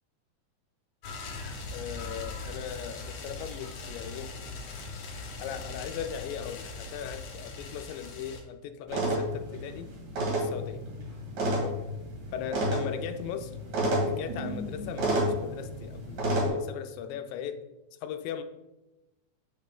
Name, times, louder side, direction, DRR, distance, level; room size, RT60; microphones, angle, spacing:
sound 1, 1.0-8.4, left 3 dB, 60° left, 2.0 m, -40 dB
voice 1, 1.7-4.4 5.4-9.9 10.4-10.9 11.6-11.8 12.3-13.5 14.0-17.7 18.0-18.4, left 8 dB, 85° left, 8 dB, 2.2 m, -38 dB
sound 2, 8.9-16.5, right 1 dB, 60° right, 2.9 m, -30 dB
7.4 x 5.6 x 3.6 m, 0.99 s
omnidirectional pair, 4.0 m